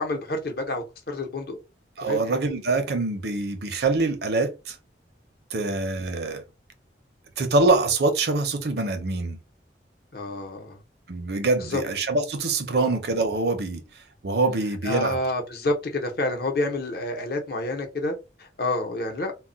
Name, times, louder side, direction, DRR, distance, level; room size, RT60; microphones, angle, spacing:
voice 1, 0.0-1.6 2.0-2.3 5.5-5.7 10.1-10.8 11.6-11.8 12.7-12.9 14.8-19.3, left 2 dB, 55° left, 0.8 m, -29 dB
voice 2, 2.0-4.8 5.5-6.4 7.4-9.4 11.1-13.8 14.2-15.2, right 3 dB, 65° right, 0.6 m, -24 dB
2.2 x 2.1 x 3.8 m
head